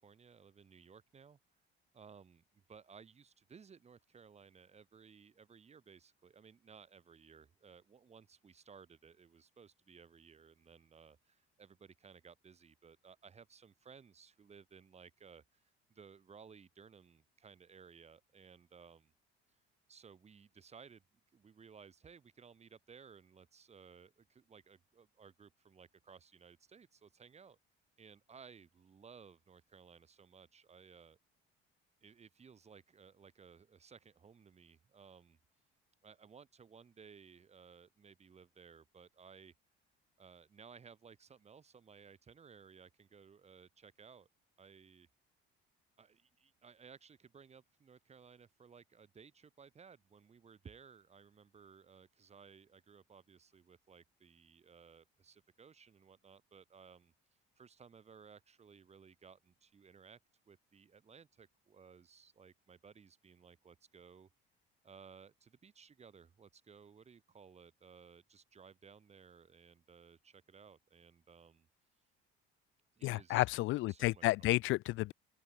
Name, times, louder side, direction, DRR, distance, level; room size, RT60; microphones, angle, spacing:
voice 1, 0.0-1.4 1.9-2.4 2.7-19.1 19.9-21.0 21.3-27.6 28.0-31.2 32.0-35.4 36.0-39.5 40.2-44.3 44.6-45.1 46.0-57.1 57.6-60.2 60.5-64.3 64.8-71.7 72.9-73.5 73.9-74.6, right 6 dB, 30° right, 7.9 m, -59 dB
voice 2, 73.0-75.1, left 18 dB, 70° left, 0.7 m, -31 dB
cardioid pair, 125°, 21 cm